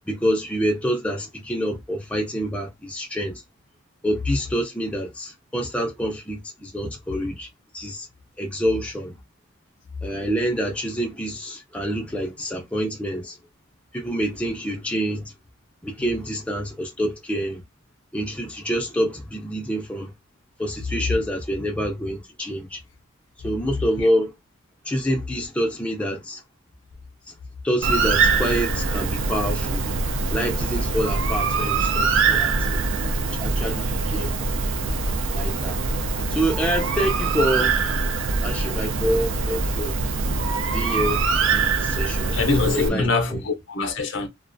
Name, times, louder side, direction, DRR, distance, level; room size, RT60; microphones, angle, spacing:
voice 1, 0.1-3.4 4.0-7.5 7.7-8.1 8.4-9.2 10.0-13.4 13.9-15.3 15.8-17.6 18.1-20.1 20.6-22.8 23.4-24.3 24.8-26.4 27.6-29.9 30.3-32.8 33.4-34.3 35.3-35.8 36.3-37.8 38.4-40.0 40.7-41.3 41.5-42.4 42.7-43.4, equal, 5° left, 0.4 m, -27 dB
Bird, 27.8-42.9, right 4 dB, 65° right, 0.4 m, -23 dB
voice 2, 42.3-44.3, left 3 dB, 60° left, 0.5 m, -23 dB
2.3 x 2.1 x 2.5 m
head